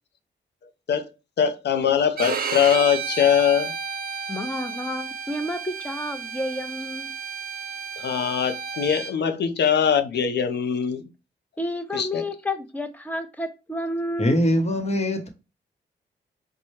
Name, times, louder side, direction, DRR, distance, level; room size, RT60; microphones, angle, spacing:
voice 1, 1.4-3.7 8.0-11.0 11.9-12.2, left 8 dB, 65° left, 0.6 m, -22 dB
Bowed string instrument, 2.2-9.1, right 6 dB, 55° right, 0.5 m, -32 dB
voice 2, 4.3-7.1 11.6-14.5, left 1 dB, 10° left, 0.8 m, -30 dB
voice 3, 14.2-15.3, left 1 dB, 35° left, 1.0 m, -22 dB
4.2 x 2.2 x 3.1 m
cardioid pair, 55°, 19 cm